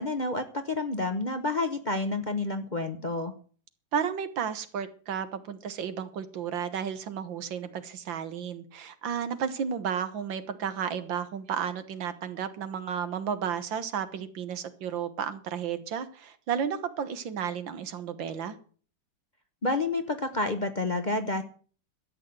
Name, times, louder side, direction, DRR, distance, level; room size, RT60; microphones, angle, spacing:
voice 1, 0.0-3.3 19.6-21.4, left 2 dB, 35° left, 7 dB, 0.8 m, -29 dB
voice 2, 3.9-18.6, right 7 dB, 85° right, 12 dB, 2.0 m, -33 dB
13.0 x 8.6 x 7.9 m, 0.43 s
omnidirectional pair, 2.0 m